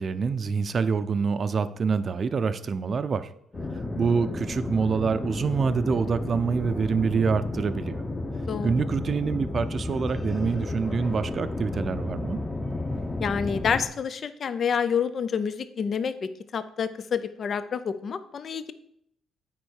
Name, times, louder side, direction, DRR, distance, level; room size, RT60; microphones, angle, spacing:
voice 1, 0.0-3.3 4.0-8.0 8.6-12.4, right 5 dB, 45° right, 12 dB, 0.6 m, -26 dB
sound 1, 3.5-13.9, left 2 dB, 20° left, 1.0 m, -32 dB
voice 2, 13.2-18.7, left 7 dB, 50° left, 12 dB, 0.6 m, -28 dB
9.1 x 4.6 x 6.4 m, 0.71 s
cardioid pair, 90°, 0 cm